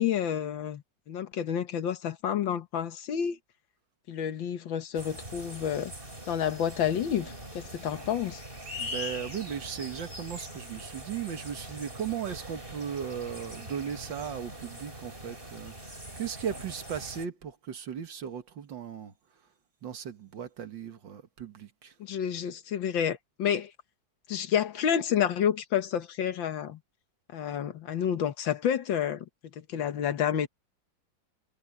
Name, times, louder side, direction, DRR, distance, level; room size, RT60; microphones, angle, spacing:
voice 1, 0.0-3.4 4.1-5.9 6.3-8.4 22.0-23.7 24.3-26.8 27.3-29.3 29.6-30.5, left 9 dB, 90° left, 2.0 m, -29 dB
sound 1, 4.9-17.3, equal, 30° right, 6.4 m, -42 dB
voice 2, 8.8-19.1 19.8-21.9, right 8 dB, 75° right, 2.2 m, -37 dB
omnidirectional pair, 2.0 m